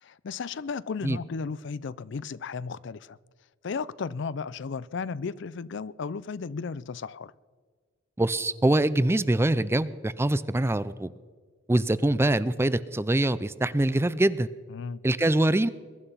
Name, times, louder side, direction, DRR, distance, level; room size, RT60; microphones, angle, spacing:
voice 1, 0.0-3.2 3.6-7.3 14.7-15.0, left 5 dB, 65° left, 0.5 m, -34 dB
voice 2, 8.2-11.1 11.7-14.5 15.0-15.7, right 1 dB, 15° right, 0.4 m, -24 dB
22.0 x 11.0 x 5.6 m
head